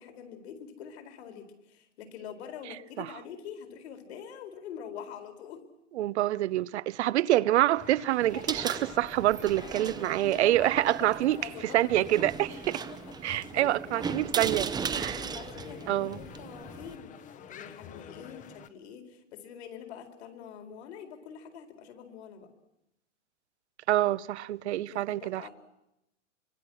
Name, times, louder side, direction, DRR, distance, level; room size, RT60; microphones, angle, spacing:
voice 1, 0.0-5.6 8.8-8.9 9.5-10.0 10.3-12.3 13.2-14.2 15.0-22.5 24.7-25.5, left 8 dB, 60° left, 4.4 m, -45 dB
voice 2, 5.9-11.4 11.7-12.8 13.2-15.2 15.9-16.2 23.9-25.5, right 14 dB, 65° right, 0.9 m, -26 dB
sound 1, 7.8-18.7, left 8 dB, 20° left, 1.1 m, -49 dB
sound 2, 8.2-17.0, right 6 dB, 10° right, 0.8 m, -37 dB
25.5 x 25.0 x 6.4 m
hypercardioid pair, 135°, 37 cm